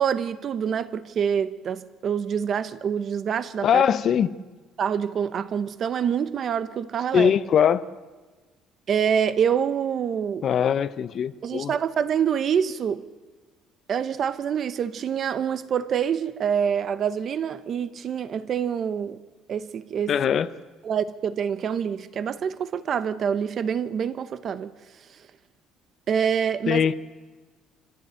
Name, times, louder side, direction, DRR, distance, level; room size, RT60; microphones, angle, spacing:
voice 1, 0.0-3.8 4.8-7.3 8.9-10.4 11.4-13.0 13.9-19.2 19.5-20.2 20.8-24.7 26.1-26.9, right 7 dB, 35° right, 0.9 m, -26 dB
voice 2, 3.6-4.3 7.1-7.8 10.4-11.7 20.1-20.5 26.7-26.9, left 8 dB, 35° left, 0.7 m, -21 dB
25.5 x 15.0 x 9.0 m
cardioid pair, 170°, 0 cm